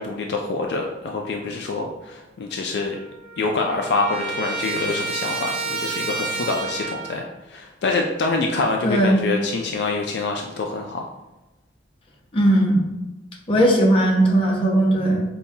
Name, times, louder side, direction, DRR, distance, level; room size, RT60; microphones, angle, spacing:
voice 1, 0.0-3.0 3.4-11.0, left 3 dB, 65° left, 1 dB, 0.3 m, -26 dB
Trumpet, 2.5-2.6 2.8-7.3, right 3 dB, 60° right, 0.6 m, -30 dB
voice 2, 8.8-9.2 12.3-12.8 13.5-15.2, right 1 dB, 30° left, -2 dB, 0.7 m, -18 dB
5.3 x 2.2 x 2.6 m, 1.1 s
head